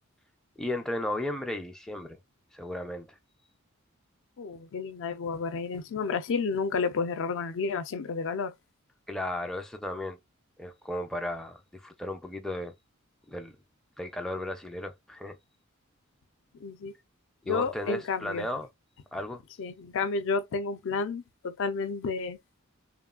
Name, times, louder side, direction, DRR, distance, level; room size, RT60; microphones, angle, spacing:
voice 1, 0.6-2.2 2.5-3.2 9.1-10.2 10.6-12.7 13.3-13.6 14.0-15.4 17.4-18.7 19.1-19.4, left 1 dB, ahead, 0.4 m, -35 dB
voice 2, 4.4-8.5 16.6-16.9 17.5-18.5 19.6-22.4, left 4 dB, 60° left, 0.4 m, -31 dB
3.0 x 2.2 x 2.4 m
head